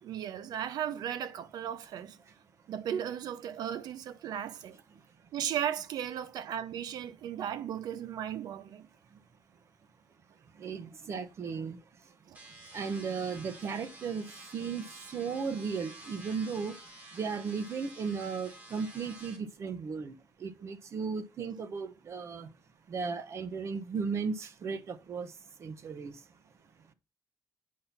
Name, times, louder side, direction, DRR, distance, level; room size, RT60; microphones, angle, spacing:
voice 1, 0.0-2.2 2.7-4.8 5.3-8.9 12.3-12.4, right 9 dB, 80° right, 0.7 m, -36 dB
voice 2, 10.6-11.8 12.7-14.2 14.5-16.7 17.1-22.5 22.9-25.3 25.6-26.1, right 5 dB, 45° right, 1.0 m, -35 dB
sound 1, 12.3-19.4, right 2 dB, 25° right, 2.8 m, -50 dB
8.6 x 5.7 x 5.8 m
wide cardioid pair, 175°, 7 cm